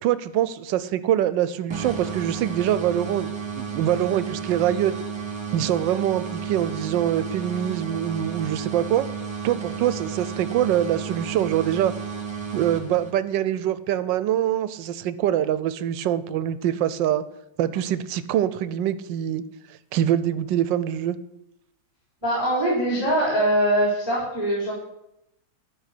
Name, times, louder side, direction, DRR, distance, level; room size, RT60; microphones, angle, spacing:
voice 1, 0.0-4.9 5.5-9.1 9.4-11.9 12.5-17.2 17.6-19.4 19.9-21.2, right 11 dB, 75° right, 15 dB, 1.2 m, -24 dB
sound 1, 1.7-13.4, right 6 dB, 15° right, 1.5 m, -33 dB
voice 2, 22.2-24.7, right 1 dB, 10° left, -6 dB, 3.6 m, -22 dB
12.0 x 5.2 x 6.6 m, 0.84 s
omnidirectional pair, 2.1 m